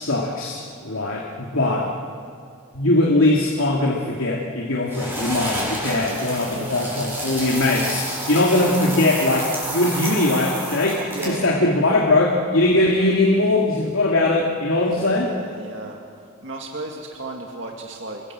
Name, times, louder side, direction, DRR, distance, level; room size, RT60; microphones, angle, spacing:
voice 1, 0.0-1.9 2.7-15.3, left 2 dB, 75° left, -1 dB, 2.7 m, -20 dB
voice 2, 1.6-1.9 6.4-7.1 11.1-11.6 12.8-13.1 14.8-16.0 16.4-18.2, right 2 dB, 65° right, 0 dB, 2.2 m, -35 dB
sound 1, 4.9-11.5, right 1 dB, 10° right, 7.3 m, -29 dB
29.0 x 23.5 x 7.7 m, 2.3 s
head